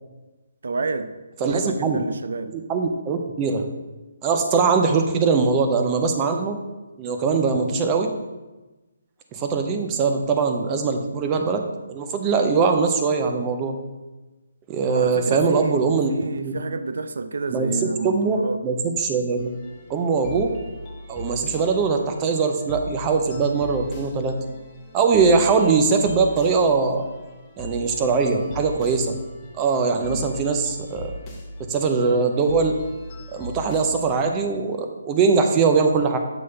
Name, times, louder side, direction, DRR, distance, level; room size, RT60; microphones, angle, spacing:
voice 1, 0.6-1.1 1.4-2.5 14.8-15.8 16.1-18.6 30.1-30.3, right 4 dB, 70° right, 10 dB, 0.5 m, -29 dB
voice 2, 1.4-2.0 2.5-3.7 4.2-6.6 7.0-8.1 9.3-13.8 14.7-16.6 17.5-17.7 18.0-18.4 18.6-19.5 19.9-20.5 21.1-24.3 24.9-27.0 27.6-29.2 29.6-31.1 31.6-32.8 33.3-36.2, right 4 dB, 20° right, 5 dB, 0.7 m, -21 dB
sound 1, 19.4-34.2, left 1 dB, 20° left, 1.1 m, -38 dB
7.0 x 3.1 x 5.7 m, 1.1 s
hypercardioid pair, 150°, 0 cm